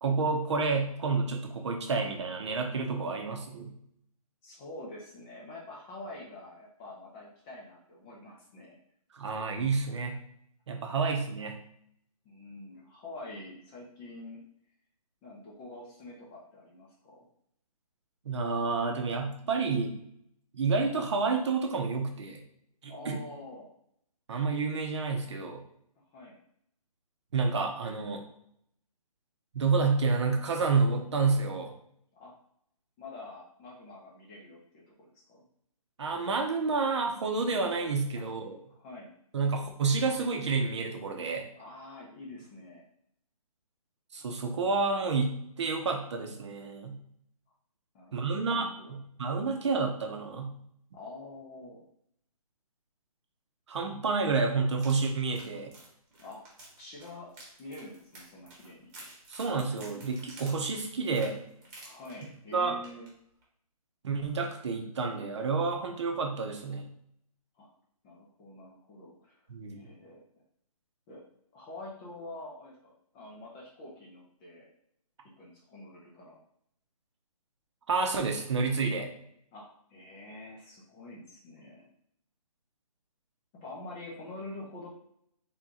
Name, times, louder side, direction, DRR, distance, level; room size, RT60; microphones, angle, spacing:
voice 1, 0.0-3.7 9.1-10.2 10.7-11.6 18.2-19.9 20.5-22.4 22.8-23.2 24.3-25.6 27.3-28.2 29.5-31.7 36.0-38.6 39.3-41.5 44.1-47.0 48.1-50.5 53.7-55.7 59.3-61.4 62.5-62.7 64.0-66.9 69.5-69.9 77.9-79.1, right 4 dB, 50° right, 3 dB, 0.8 m, -29 dB
voice 2, 4.4-8.8 10.8-11.0 12.2-14.4 15.2-17.3 22.9-23.7 26.1-26.4 32.2-32.3 33.0-35.4 38.1-38.4 38.7-39.1 41.5-42.8 47.9-49.0 50.9-51.8 56.2-56.4 56.8-57.3 57.6-59.0 61.8-63.1 67.6-67.7 68.0-69.3 69.7-70.2 71.1-71.2 71.5-74.7 75.2-76.4 79.5-81.9 83.6-84.9, left 2 dB, 15° left, -4 dB, 0.5 m, -46 dB
sound 1, 54.8-62.5 62.8-63.1 63.4-63.5, right 2 dB, 20° right, 1.1 m, -51 dB
3.6 x 2.9 x 3.7 m, 0.70 s
hypercardioid pair, 160°, 19 cm